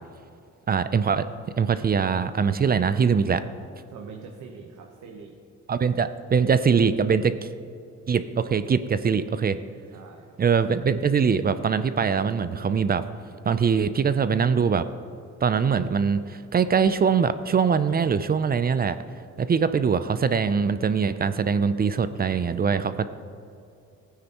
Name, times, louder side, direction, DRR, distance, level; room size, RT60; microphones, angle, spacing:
voice 1, 0.7-1.3 1.6-3.4 5.7-7.4 8.1-9.6 10.4-13.0 13.5-14.8 15.4-19.0 19.4-23.1, right 6 dB, 30° right, 12 dB, 0.5 m, -22 dB
voice 2, 3.9-5.4 9.9-10.4, right 5 dB, 70° right, 2 dB, 1.1 m, -43 dB
16.0 x 9.6 x 3.0 m, 2.5 s
cardioid pair, 90°, 30 cm